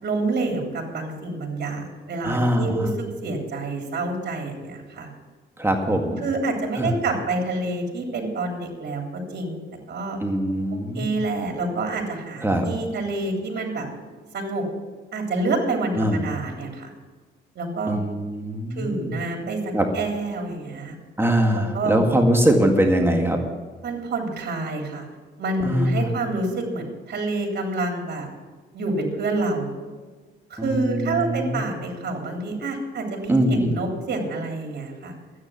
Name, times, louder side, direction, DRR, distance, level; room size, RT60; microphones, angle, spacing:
voice 1, 0.0-5.1 6.2-9.6 9.9-10.2 10.9-13.9 14.3-14.6 15.1-16.9 17.6-18.0 18.8-21.0 21.5-22.0 23.8-25.1 25.4-28.3 28.7-29.8 30.5-35.1, right 2 dB, 55° right, 1 dB, 3.6 m, -28 dB
voice 2, 2.2-2.9 5.6-6.2 6.8-6.9 10.2-11.2 12.4-12.7 16.0-16.2 17.9-19.1 19.7-19.9 21.2-23.4 25.6-26.1 30.6-31.7 33.3-33.7, right 1 dB, 10° right, 3 dB, 2.1 m, -22 dB
12.5 x 9.8 x 7.5 m, 1.4 s
cardioid pair, 90°, 20 cm